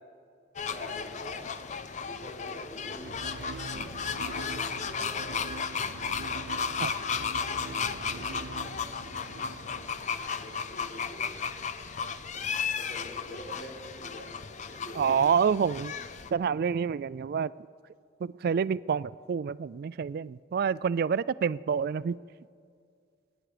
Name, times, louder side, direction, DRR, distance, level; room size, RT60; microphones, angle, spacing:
sound 1, 0.6-16.3, left 6 dB, 40° left, 0.5 m, -34 dB
voice 1, 0.7-1.5 2.0-3.3 3.9-5.5 6.5-8.9 9.4-9.7 10.1-11.4 11.7-11.8 12.1-14.4 14.6-15.3, equal, 60° left, -3 dB, 4.4 m, -47 dB
sound 2, 2.9-10.4, right 3 dB, 75° right, 0.8 m, -43 dB
voice 2, 15.0-15.9 16.3-17.5 18.2-22.2, right 6 dB, 55° right, 19 dB, 0.3 m, -28 dB
25.0 x 10.0 x 5.0 m, 2.3 s
head